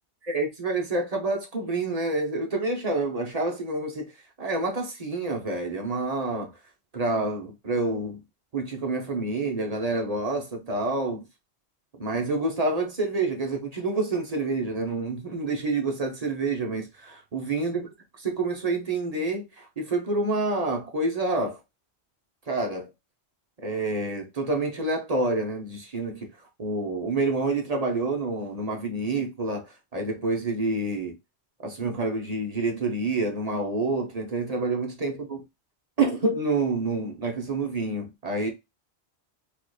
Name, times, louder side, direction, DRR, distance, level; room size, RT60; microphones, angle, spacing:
voice 1, 0.2-4.1 4.4-6.5 6.9-8.2 8.5-11.3 12.0-17.9 18.2-21.6 22.5-22.9 23.6-26.3 26.6-31.1 31.6-35.4 36.0-38.5, right 2 dB, 40° right, 0.8 m, -28 dB
4.6 x 2.4 x 2.3 m
omnidirectional pair, 1.1 m